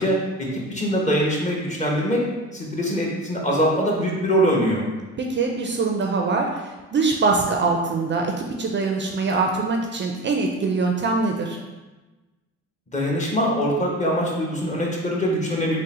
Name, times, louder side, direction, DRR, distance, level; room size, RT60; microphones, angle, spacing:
voice 1, 0.0-2.2 2.5-4.8 12.9-15.8, equal, 25° left, -3 dB, 1.0 m, -23 dB
voice 2, 5.2-11.6, right 3 dB, 40° right, 1 dB, 0.4 m, -23 dB
3.7 x 2.1 x 4.1 m, 1.2 s
cardioid pair, 90°, 30 cm